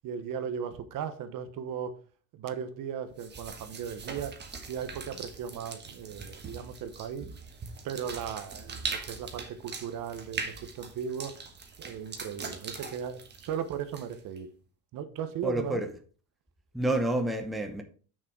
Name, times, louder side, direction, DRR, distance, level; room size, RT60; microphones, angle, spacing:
voice 1, 0.0-2.0 2.3-4.3 4.7-7.3 7.8-11.3 11.8-14.5 14.9-15.8, right 8 dB, 55° right, 1.2 m, -37 dB
sound 1, 3.2-14.4, right 4 dB, 25° right, 1.4 m, -41 dB
voice 2, 15.4-15.9 16.7-17.8, right 1 dB, ahead, 0.7 m, -28 dB
6.7 x 6.4 x 4.6 m
cardioid pair, 145°, 38 cm